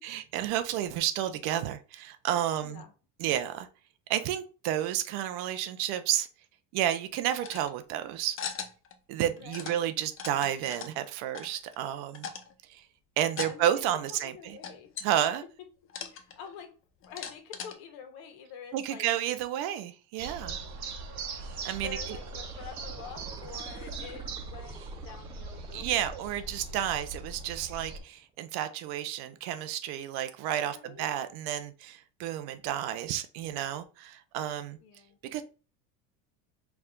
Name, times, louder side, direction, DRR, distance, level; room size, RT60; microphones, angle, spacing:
voice 1, 0.0-2.8 3.2-3.7 4.1-6.3 6.7-8.4 9.1-12.3 12.7-12.8 13.2-14.6 15.0-15.4 18.7-20.6 21.6-22.0 25.7-34.8 35.3-35.4, right 11 dB, 60° right, 10 dB, 0.7 m, -31 dB
voice 2, 2.6-2.9 9.4-9.7 13.4-13.8 14.1-14.9 16.0-16.7 17.0-19.0 20.7-20.9 21.4-21.6 21.8-26.1 26.8-27.0 30.5-31.1 34.8-35.2, left 7 dB, 60° left, 6 dB, 1.2 m, -47 dB
sound 1, 7.4-7.7 8.4-8.9 9.2-9.8 10.1-10.9 11.3-11.9 12.1-12.5 13.3-13.6 13.9-14.0 14.6-15.1 15.9-16.5 17.0-17.7, left 7 dB, 30° left, 0.7 m, -39 dB
sound 2, 20.2-28.0, right 4 dB, 40° right, 1.0 m, -40 dB
sound 3, 21.4-28.3 28.7-28.8, right 3 dB, 10° right, 0.4 m, -52 dB
4.7 x 2.4 x 3.7 m, 0.35 s
supercardioid pair, 120°, 42 cm